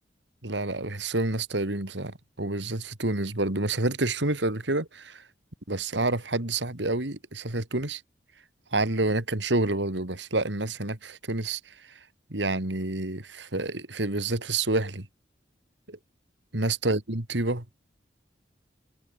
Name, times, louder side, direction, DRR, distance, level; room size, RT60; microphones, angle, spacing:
voice 1, 0.4-5.2 5.7-8.0 8.7-11.6 12.3-15.1 15.9-16.0 16.5-17.6, right 2 dB, 80° right, 2.8 m, -28 dB
head